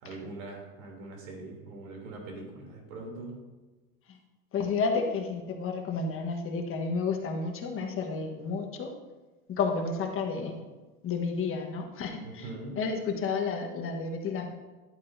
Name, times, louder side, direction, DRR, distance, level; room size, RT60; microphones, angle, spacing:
voice 1, 0.0-3.3 12.2-12.8, right 2 dB, 70° right, 0 dB, 3.3 m, -42 dB
voice 2, 4.5-8.9 9.5-10.6 11.0-12.5 12.7-14.5, left 4 dB, 30° left, 3 dB, 1.4 m, -31 dB
11.5 x 8.6 x 2.7 m, 1.2 s
hypercardioid pair, 110°, 43 cm